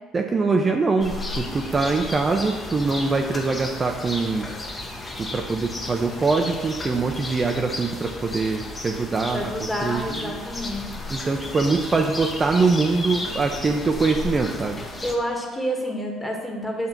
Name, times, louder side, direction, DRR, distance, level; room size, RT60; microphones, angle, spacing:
voice 1, 0.1-4.5 5.2-9.5 9.8-10.3 11.1-14.8, right 4 dB, 30° right, 3 dB, 0.5 m, -23 dB
sound 1, 1.0-15.1, left 2 dB, 25° left, 0.9 m, -34 dB
voice 2, 9.3-11.0 15.0-16.9, equal, 10° left, 1 dB, 1.4 m, -29 dB
6.8 x 2.8 x 5.8 m, 1.4 s
hypercardioid pair, 60°, 0 cm